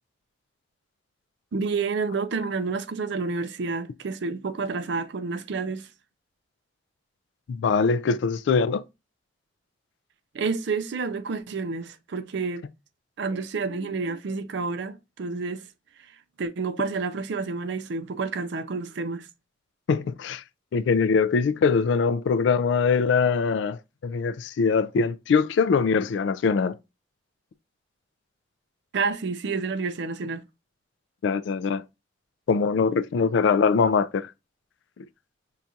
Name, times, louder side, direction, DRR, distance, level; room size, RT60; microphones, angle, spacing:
voice 1, 1.5-5.9 10.3-12.6 13.2-15.7 16.0-16.1 16.4-19.3 28.9-30.4, right 4 dB, 60° right, 0.4 m, -29 dB
voice 2, 7.5-8.8 19.9-20.4 20.7-26.8 31.2-31.8 32.5-34.3, left 5 dB, 65° left, 0.3 m, -22 dB
5.6 x 2.4 x 2.6 m
head